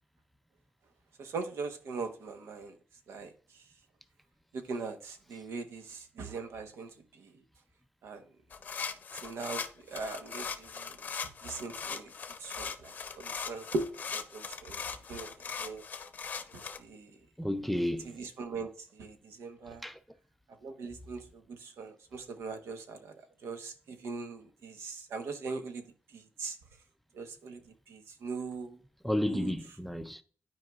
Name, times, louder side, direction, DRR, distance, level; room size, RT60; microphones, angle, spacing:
voice 1, 1.2-2.7 3.1-3.3 4.5-7.3 8.0-8.2 9.2-11.0 11.4-12.1 12.4-15.3 15.6-15.8 16.5-17.2 18.0-19.8 20.6-23.1 23.4-25.8 26.1-26.6 27.1-28.8 29.3-29.5, right 4 dB, 90° right, 1.1 m, -40 dB
sound 1, 8.5-16.8, left 6 dB, 40° left, 0.6 m, -40 dB
voice 2, 17.4-18.1 19.8-20.0 29.0-30.2, left 1 dB, ahead, 0.4 m, -32 dB
12.0 x 4.8 x 2.4 m
wide cardioid pair, 165°, 4 cm